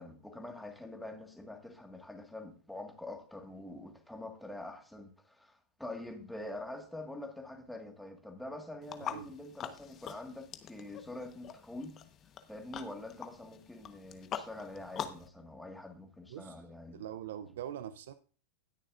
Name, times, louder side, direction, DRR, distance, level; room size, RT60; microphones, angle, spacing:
voice 1, 0.0-12.0 12.5-17.0, left 2 dB, 5° left, 1.7 m, -45 dB
sound 1, 8.8-15.3, left 9 dB, 30° left, 1.1 m, -44 dB
voice 2, 16.3-16.6 16.9-18.1, right 10 dB, 75° right, 0.5 m, -43 dB
18.5 x 6.6 x 2.5 m
hypercardioid pair, 125°, 0 cm